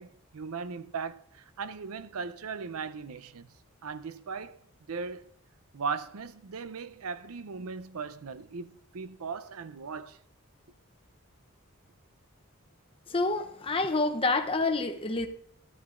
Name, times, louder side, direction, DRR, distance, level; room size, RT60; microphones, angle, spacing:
voice 1, 0.0-3.5 3.8-4.6 4.9-5.3 5.7-10.2, right 5 dB, 75° right, 0.6 m, -38 dB
voice 2, 13.1-15.3, left 3 dB, 25° left, 0.7 m, -28 dB
13.5 x 11.5 x 2.5 m
head